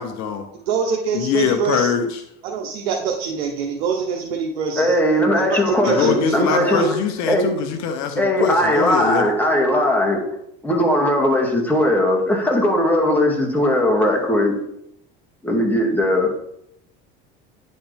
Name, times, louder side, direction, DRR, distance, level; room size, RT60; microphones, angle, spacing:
voice 1, 0.0-0.5 1.1-2.2 5.9-9.3, left 7 dB, 60° left, 0.9 m, -23 dB
voice 2, 0.7-1.9 2.4-4.9 5.3-6.9, right 6 dB, 85° right, 1.0 m, -25 dB
voice 3, 4.8-7.0 7.2-7.6 8.2-10.2 10.6-14.6 15.4-16.3, left 1 dB, 5° left, 2.3 m, -19 dB
10.0 x 4.3 x 3.5 m
supercardioid pair, 95°, 30 cm